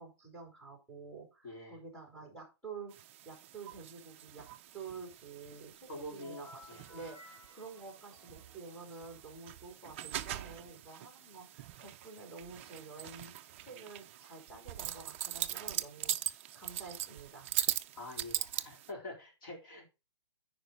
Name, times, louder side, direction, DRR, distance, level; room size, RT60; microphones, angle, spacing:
voice 1, 0.0-3.0 3.2-4.5 4.7-13.4 13.6-17.5, right 4 dB, 5° left, 3.2 m, -49 dB
voice 2, 1.4-1.8 5.9-6.8 18.0-19.8, left 1 dB, 45° left, 4.0 m, -46 dB
sound 1, 2.9-18.9, right 13 dB, 25° right, 0.4 m, -41 dB
sound 2, 6.2-9.8, left 2 dB, 25° left, 4.7 m, -58 dB
9.7 x 4.9 x 4.0 m
hypercardioid pair, 160°, 15 cm